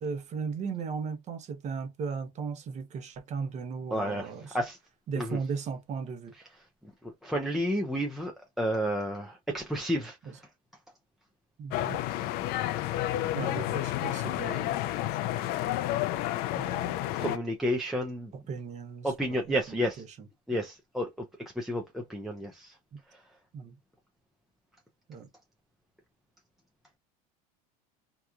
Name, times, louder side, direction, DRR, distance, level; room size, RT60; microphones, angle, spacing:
voice 1, 0.0-4.6 5.1-6.3 10.2-10.4 11.6-12.0 13.3-14.8 16.6-16.9 18.3-20.6 22.9-23.0 23.5-23.8 25.1-25.3, right 5 dB, 40° right, 0.9 m, -37 dB
voice 2, 3.9-4.3 4.5-4.8 5.2-5.3 7.2-10.2 17.2-18.3 19.0-20.0 20.5-21.1 21.6-22.7, equal, ahead, 0.6 m, -31 dB
sound 1, 11.7-17.4, left 14 dB, 55° left, 0.5 m, -30 dB
2.9 x 2.3 x 2.3 m
supercardioid pair, 110°, 19 cm